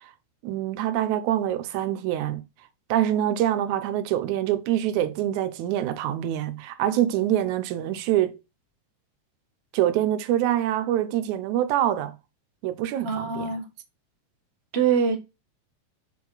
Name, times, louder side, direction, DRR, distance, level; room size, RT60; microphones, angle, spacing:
voice 1, 0.4-2.4 2.9-8.4 9.7-12.1 12.6-13.6, right 12 dB, 85° right, 2.1 m, -25 dB
voice 2, 13.0-13.7 14.7-15.2, right 6 dB, 40° right, 0.9 m, -24 dB
5.9 x 4.7 x 3.9 m
omnidirectional pair, 3.3 m